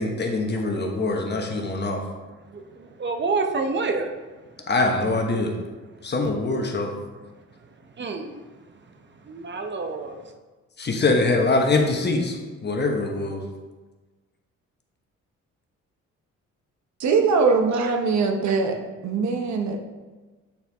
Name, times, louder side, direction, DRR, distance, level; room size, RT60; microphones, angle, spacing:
voice 1, 0.0-2.0 4.7-5.5 6.0-6.9 10.8-12.4 12.6-13.4, left 2 dB, 35° left, 3 dB, 1.1 m, -23 dB
voice 2, 3.0-4.1 8.0-8.3 9.3-10.1, right 4 dB, 35° right, 5 dB, 0.8 m, -27 dB
voice 3, 17.0-18.7 19.0-19.8, right 4 dB, 65° right, 4 dB, 1.0 m, -21 dB
8.4 x 4.5 x 3.5 m, 1.3 s
cardioid pair, 90°, 30 cm